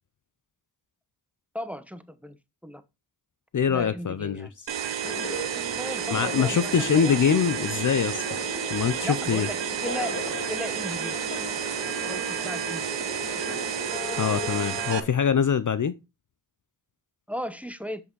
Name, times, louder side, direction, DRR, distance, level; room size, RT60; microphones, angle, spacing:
voice 1, 1.5-2.4 2.6-2.8 3.7-4.5 5.6-7.2 9.0-10.2 10.5-11.4 11.8-13.0 17.3-18.0, equal, 5° right, 0.9 m, -36 dB
voice 2, 3.5-4.5 6.1-8.2 8.7-9.5 14.2-15.9, left 7 dB, 45° left, 0.6 m, -24 dB
sound 1, 4.7-15.0, right 9 dB, 80° right, 0.8 m, -31 dB
Conversation, 5.0-15.0, left 2 dB, 30° left, 2.3 m, -37 dB
7.7 x 5.9 x 3.9 m
cardioid pair, 50°, 43 cm